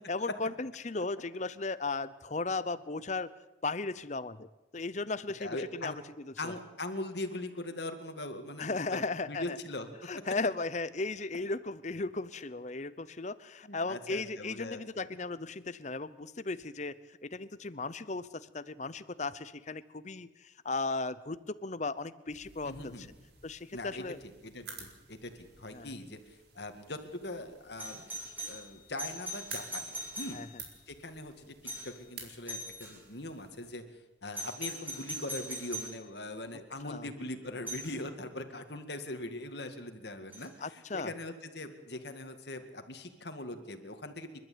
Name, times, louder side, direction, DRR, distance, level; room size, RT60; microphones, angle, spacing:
voice 1, 0.1-3.3 3.6-4.5 4.7-6.5 8.6-9.6 10.1-23.1 23.4-24.2 25.7-26.0 30.3-30.6 36.8-37.1 40.6-41.1, left 3 dB, 35° left, 16 dB, 0.8 m, -36 dB
voice 2, 5.4-6.0 6.4-9.0 9.3-10.1 13.7-15.1 22.6-23.1 23.7-26.2 26.6-30.4 30.9-31.6 31.8-33.8 34.2-44.3, left 2 dB, 60° left, 7 dB, 2.2 m, -41 dB
sound 1, 22.3-33.7, right 5 dB, 55° right, 4.3 m, -53 dB
Doorbell, 27.8-30.8 31.6-32.0 32.5-33.0 34.3-36.0 37.7-37.9 40.3-40.4, right 1 dB, 10° right, 7.0 m, -41 dB
29.5 x 12.0 x 8.7 m, 1.1 s
head